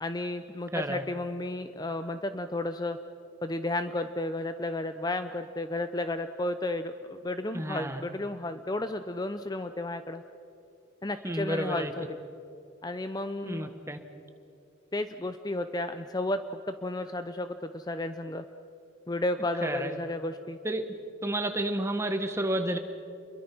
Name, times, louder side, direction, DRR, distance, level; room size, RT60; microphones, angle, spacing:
voice 1, 0.0-3.0 3.4-10.2 11.0-12.2 12.8-13.7 14.9-18.4 19.1-20.6, left 2 dB, 20° left, 10 dB, 0.6 m, -33 dB
voice 2, 0.7-1.0 7.5-8.0 11.2-11.9 13.4-14.0 19.6-20.0 20.6-20.8 21.2-22.8, right 1 dB, 15° right, 7 dB, 1.4 m, -31 dB
29.5 x 22.5 x 6.1 m, 2.7 s
head